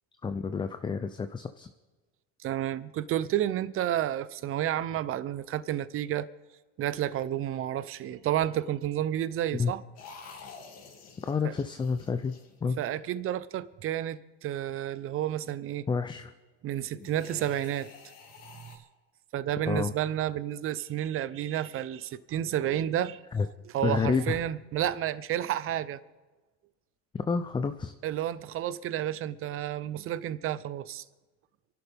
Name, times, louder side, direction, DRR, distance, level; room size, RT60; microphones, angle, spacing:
voice 1, 0.2-1.7 9.5-9.7 11.2-12.8 15.9-16.3 19.7-19.9 23.3-23.5 23.8-24.4 27.3-27.9, left 5 dB, 15° left, 0.5 m, -29 dB
voice 2, 2.4-6.3 6.8-9.8 11.4-11.5 12.8-15.9 16.6-17.9 18.6-18.8 19.3-23.2 23.6-26.0 28.0-31.0, right 11 dB, 40° right, 0.8 m, -31 dB
sound 1, 10.0-13.1 16.9-18.8, left 5 dB, 50° left, 2.7 m, -49 dB
29.0 x 11.5 x 3.6 m
cardioid pair, 135°, 33 cm